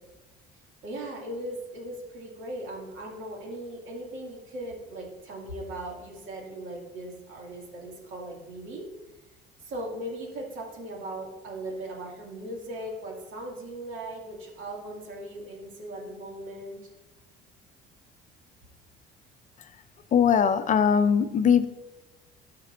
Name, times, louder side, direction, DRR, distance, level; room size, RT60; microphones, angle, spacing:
voice 1, 0.8-8.9 9.6-16.8, right 1 dB, 70° right, -1 dB, 2.4 m, -38 dB
voice 2, 20.1-21.7, left 7 dB, 35° left, 11 dB, 0.5 m, -21 dB
12.5 x 5.9 x 2.6 m, 1.1 s
cardioid pair, 105°, 21 cm